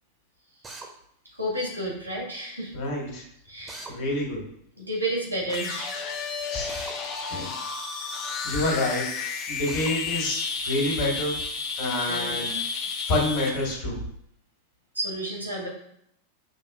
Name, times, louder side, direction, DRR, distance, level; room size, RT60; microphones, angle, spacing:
Drill, 0.6-0.9 3.7-4.0 6.7-7.0 9.7-9.9, right 3 dB, 15° right, 0.7 m, -40 dB
voice 1, 1.4-2.7 3.5-3.9 4.8-6.0 12.0-12.4 15.0-15.7, right 1 dB, 90° right, -3 dB, 1.6 m, -31 dB
voice 2, 2.7-3.2 3.9-4.4 6.5-6.8 7.3-7.5 8.0-8.2 8.4-9.1 9.5-10.4 10.6-11.4 11.8-12.6 13.1-14.0, left 2 dB, 50° left, -2 dB, 1.6 m, -27 dB
sound 1, 5.5-13.7, left 5 dB, 35° left, 0.6 m, -32 dB
6.4 x 2.7 x 2.4 m, 0.72 s
figure-of-eight pair, 90°, 0 cm